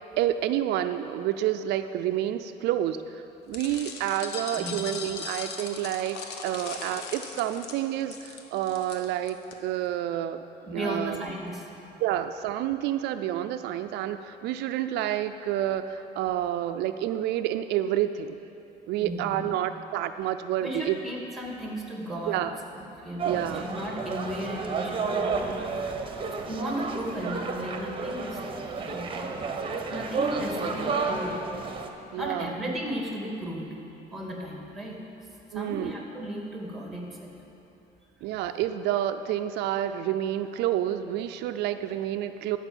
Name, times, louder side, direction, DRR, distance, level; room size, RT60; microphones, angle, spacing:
voice 1, 0.2-6.2 6.4-9.4 9.6-10.4 10.7-11.2 12.0-18.4 18.9-21.0 22.3-22.6 23.2-23.6 32.1-32.5 35.5-36.0 38.2-42.6, right 12 dB, 80° right, 9 dB, 0.4 m, -29 dB
sound 1, 3.5-9.5, left 5 dB, 85° left, 1.1 m, -39 dB
voice 2, 10.8-11.7 19.0-19.5 20.6-22.5 22.7-25.6 26.4-28.4 28.8-29.5 29.8-31.4 32.2-33.8 34.1-35.0 35.5-37.3, equal, ahead, -1 dB, 2.3 m, -35 dB
sound 2, 23.2-31.9, right 4 dB, 30° right, 1.0 m, -31 dB
13.5 x 6.0 x 7.2 m, 3.0 s
cardioid pair, 110°, 17 cm